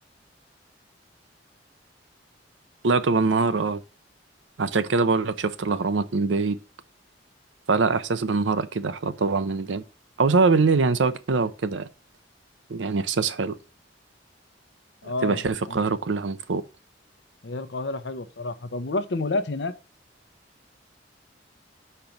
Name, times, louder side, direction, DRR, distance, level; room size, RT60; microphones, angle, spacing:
voice 1, 2.8-3.8 4.6-6.6 7.7-9.8 10.2-11.9 12.7-13.5 15.0-16.6, right 4 dB, 90° right, 0.6 m, -23 dB
voice 2, 15.0-15.8 17.4-19.7, left 2 dB, 65° left, 0.8 m, -30 dB
5.8 x 4.5 x 5.1 m
head